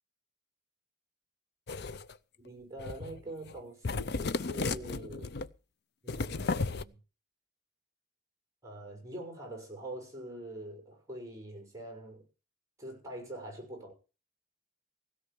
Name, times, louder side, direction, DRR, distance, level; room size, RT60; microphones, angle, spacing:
sound 1, 1.7-2.1 2.8-3.2 3.5-3.6 3.8-5.5 6.1-6.8, left 3 dB, 50° left, 0.6 m, -34 dB
voice 1, 2.4-5.3 6.0-7.0 8.6-12.2 12.8-13.9, right 1 dB, 15° right, 5.9 m, -44 dB
16.5 x 5.7 x 8.7 m
head